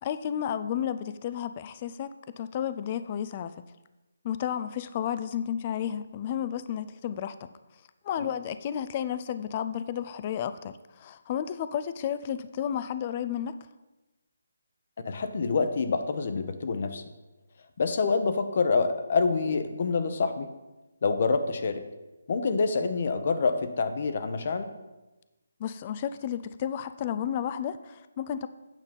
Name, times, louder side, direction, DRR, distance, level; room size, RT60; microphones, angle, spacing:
voice 1, 0.0-3.5 4.2-7.5 8.0-13.6 25.6-28.5, left 9 dB, 30° left, 12 dB, 0.4 m, -32 dB
voice 2, 15.0-17.0 17.8-20.5 21.0-21.8 22.3-24.7, left 4 dB, 45° left, 9 dB, 0.8 m, -26 dB
9.0 x 5.6 x 5.3 m, 1.1 s
hypercardioid pair, 160°, 0 cm